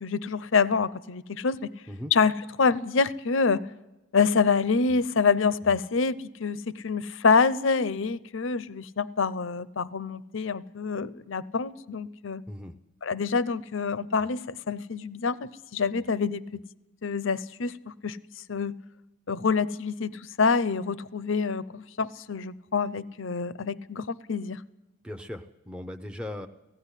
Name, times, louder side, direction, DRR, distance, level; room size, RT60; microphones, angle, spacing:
voice 1, 0.0-1.7 2.1-3.6 4.1-12.4 13.0-16.6 17.0-18.2 18.5-18.7 19.3-24.6, left 5 dB, 70° left, 17 dB, 0.6 m, -26 dB
voice 2, 25.0-26.5, left 1 dB, 5° right, 5 dB, 0.7 m, -38 dB
16.5 x 16.0 x 9.9 m, 1.0 s
head